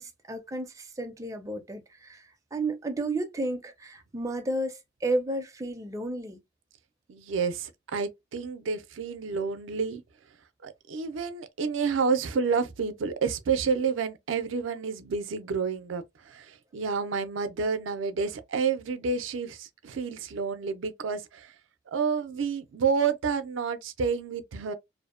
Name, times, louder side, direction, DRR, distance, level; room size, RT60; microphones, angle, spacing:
voice 1, 0.0-6.4, right 2 dB, 15° right, 0.4 m, -32 dB
voice 2, 7.1-10.0 10.6-21.5 21.9-24.7, right 5 dB, 85° right, 0.4 m, -29 dB
2.6 x 2.0 x 2.4 m
head